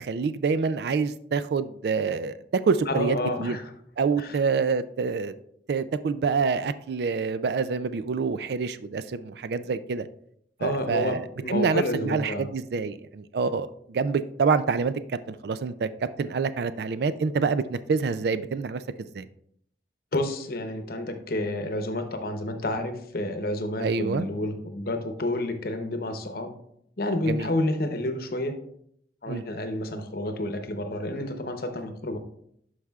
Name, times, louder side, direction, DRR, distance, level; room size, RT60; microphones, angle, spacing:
voice 1, 0.0-3.6 4.0-5.3 5.7-10.1 10.6-15.0 15.3-15.9 16.2-19.2 23.8-24.3 27.3-27.5 29.2-29.4, right 5 dB, 65° right, 13 dB, 0.3 m, -27 dB
voice 2, 2.9-3.7 4.2-4.4 10.6-12.5 20.1-26.5 27.0-28.6 29.2-32.2, left 1 dB, 55° left, 7 dB, 0.8 m, -30 dB
12.0 x 4.8 x 2.4 m, 0.70 s
head